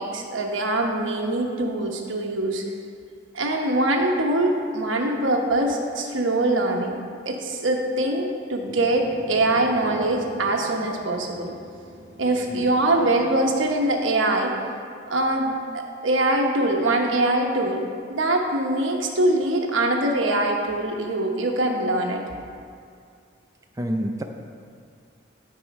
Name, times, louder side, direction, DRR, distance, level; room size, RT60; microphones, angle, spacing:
voice 1, 0.0-2.6 3.3-7.0 7.2-11.5 12.2-14.5 15.1-17.8 18.1-22.2, right 1 dB, 85° right, 1 dB, 1.1 m, -23 dB
sound 1, 8.6-13.9, equal, 60° left, 1.8 m, -44 dB
voice 2, 23.8-24.2, right 1 dB, 15° right, 2 dB, 0.5 m, -28 dB
11.5 x 4.8 x 5.3 m, 2.3 s
head